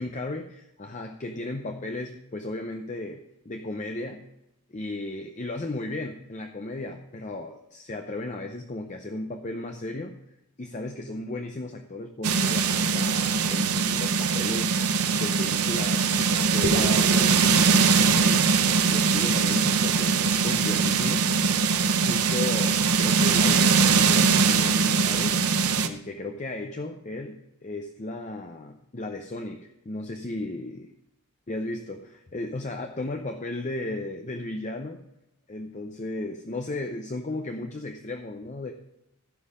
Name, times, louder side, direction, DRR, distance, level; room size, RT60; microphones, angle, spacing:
voice 1, 0.0-4.2 4.7-10.1 10.6-21.3 22.0-25.4 25.8-30.7 31.5-35.0 35.5-38.7, left 2 dB, 35° left, 5 dB, 0.6 m, -35 dB
sound 1, 12.2-25.9, right 5 dB, 90° right, 0.8 m, -22 dB
sound 2, 16.6-21.0, right 2 dB, 40° right, 0.8 m, -36 dB
14.5 x 5.5 x 5.0 m, 0.86 s
head